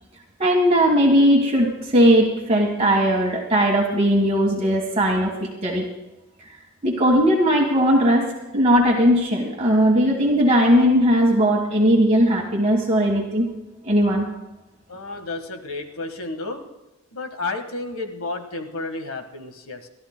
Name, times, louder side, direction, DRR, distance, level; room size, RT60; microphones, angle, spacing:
voice 1, 0.4-5.9 6.8-8.3 8.5-13.5 13.8-14.3, equal, 30° right, -1 dB, 1.5 m, -18 dB
voice 2, 14.9-16.6 17.1-19.9, left 3 dB, 75° left, 6 dB, 1.5 m, -31 dB
30.0 x 13.0 x 2.2 m, 1.0 s
head